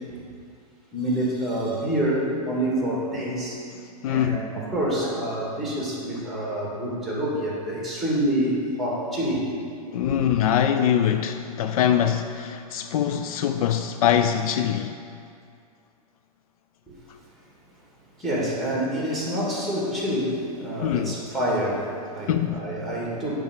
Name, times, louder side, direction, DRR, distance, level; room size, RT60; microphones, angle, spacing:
voice 1, 0.9-9.4 10.1-10.2 16.9-17.0 18.2-23.4, right 1 dB, ahead, -5 dB, 2.1 m, -27 dB
voice 2, 4.0-4.4 9.9-15.0 20.8-21.1 22.3-22.7, left 9 dB, 65° left, 8 dB, 0.4 m, -23 dB
8.4 x 3.6 x 6.5 m, 2.3 s
hypercardioid pair, 125°, 20 cm